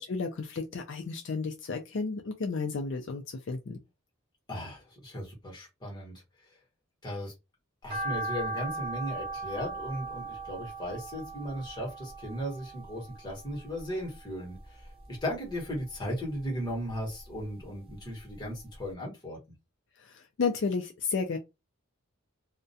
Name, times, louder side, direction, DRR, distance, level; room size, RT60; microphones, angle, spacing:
voice 1, 0.0-3.8 20.0-21.4, left 4 dB, 60° left, 0.4 m, -32 dB
voice 2, 4.5-6.2 7.0-7.3 7.8-19.4, equal, 20° left, 1.1 m, -36 dB
sound 1, 7.9-14.2 14.6-15.7 16.1-17.5 17.9-18.0 18.4-18.5 18.8-18.9, right 2 dB, 25° right, 1.0 m, -38 dB
2.3 x 2.1 x 2.6 m
head